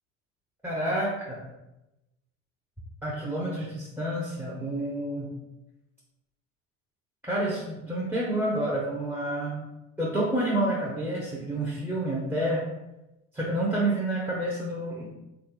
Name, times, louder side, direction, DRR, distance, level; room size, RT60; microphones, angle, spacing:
voice 1, 0.6-1.4 3.0-5.3 7.3-9.7 10.0-12.7 13.3-15.1, right 1 dB, 5° right, -4 dB, 0.6 m, -29 dB
3.1 x 2.4 x 2.9 m, 0.97 s
hypercardioid pair, 65°, 40 cm